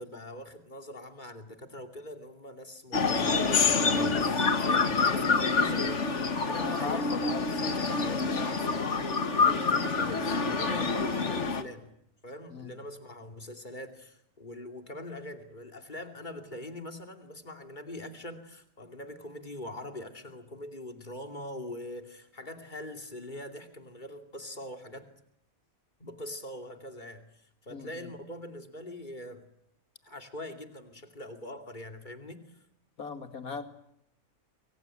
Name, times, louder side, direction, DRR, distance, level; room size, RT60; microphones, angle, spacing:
voice 1, 0.0-6.1 6.4-7.2 7.5-11.9 12.2-25.1 26.0-29.4 30.0-32.6, left 1 dB, 30° left, 5 dB, 2.8 m, -43 dB
sound 1, 2.9-11.6, left 4 dB, 55° left, 2.0 m, -27 dB
voice 2, 6.5-7.4 12.5-12.7 27.7-28.1 33.0-33.6, left 4 dB, 90° left, 7 dB, 2.7 m, -38 dB
28.5 x 23.0 x 9.1 m, 0.75 s
omnidirectional pair, 1.5 m